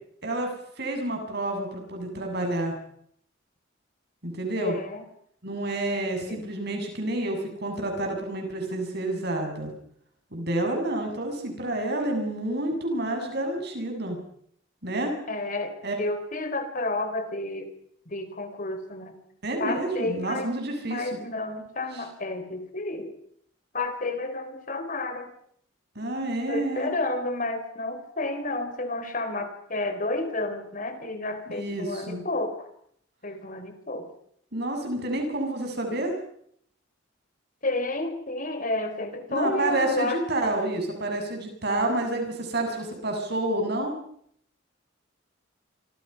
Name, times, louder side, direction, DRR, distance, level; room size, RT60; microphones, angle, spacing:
voice 1, 0.8-2.7 4.2-4.7 5.4-9.7 10.3-14.2 14.8-15.1 15.8-16.0 19.4-21.1 26.0-26.9 31.5-32.2 34.5-36.2 39.3-43.9, right 1 dB, 55° right, 3 dB, 7.7 m, -29 dB
voice 2, 4.6-5.0 6.3-6.4 15.3-17.7 18.1-19.1 19.6-20.5 20.9-23.1 23.7-25.3 26.5-32.7 33.2-34.1 37.6-40.6, left 2 dB, 45° left, 8 dB, 4.0 m, -31 dB
27.5 x 26.0 x 5.8 m, 0.68 s
head